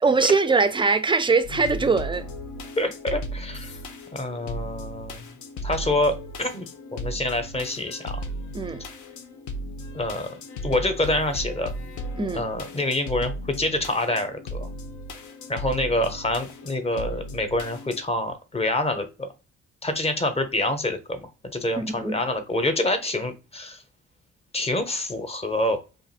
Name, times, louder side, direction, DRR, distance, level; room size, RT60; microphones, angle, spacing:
voice 1, 0.0-2.3 8.5-8.8 12.2-12.4 21.8-22.2, right 4 dB, 15° right, 0.4 m, -22 dB
sound 1, 1.4-18.0, equal, 70° left, 0.7 m, -36 dB
voice 2, 2.8-3.8 4.1-5.2 5.6-6.1 6.4-8.2 9.9-10.3 10.6-11.7 12.3-14.7 15.5-19.3 19.8-23.8 24.5-25.8, left 1 dB, 20° left, 0.7 m, -26 dB
2.5 x 2.5 x 4.0 m
cardioid pair, 90°, 30 cm